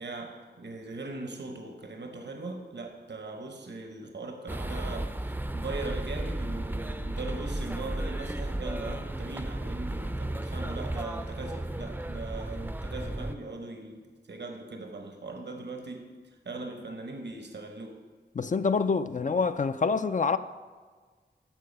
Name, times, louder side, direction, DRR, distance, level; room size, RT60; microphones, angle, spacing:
voice 1, 0.0-18.0, right 2 dB, 80° right, 1.0 m, -40 dB
sound 1, 4.5-13.4, right 1 dB, 10° right, 0.5 m, -34 dB
voice 2, 18.4-20.4, left 5 dB, 45° left, 0.4 m, -26 dB
13.5 x 4.6 x 5.3 m
wide cardioid pair, 60°, 18 cm